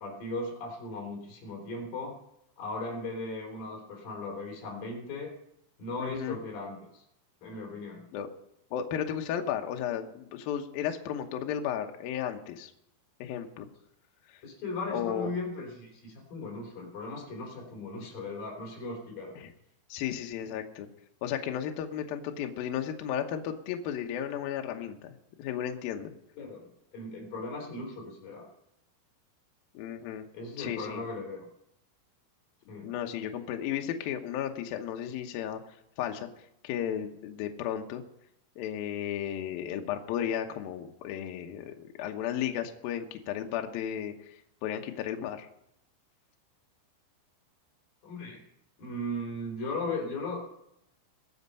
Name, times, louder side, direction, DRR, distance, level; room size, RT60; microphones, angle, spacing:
voice 1, 0.0-2.2 2.6-5.3 5.8-7.0 7.4-8.1 14.4-19.4 26.4-28.5 30.3-31.5 32.7-32.9 48.0-48.4 48.8-50.4, left 2 dB, 45° left, -1 dB, 5.0 m, -37 dB
voice 2, 6.0-6.4 8.1-8.3 8.7-12.7 13.2-13.7 14.3-14.4 14.9-15.3 19.4-19.5 19.9-20.9 21.2-26.1 29.7-30.3 30.6-31.0 32.8-35.6 36.0-36.3 36.6-38.0 38.6-45.5, left 9 dB, 90° left, 4 dB, 2.0 m, -34 dB
21.0 x 7.3 x 5.5 m, 0.80 s
omnidirectional pair, 5.8 m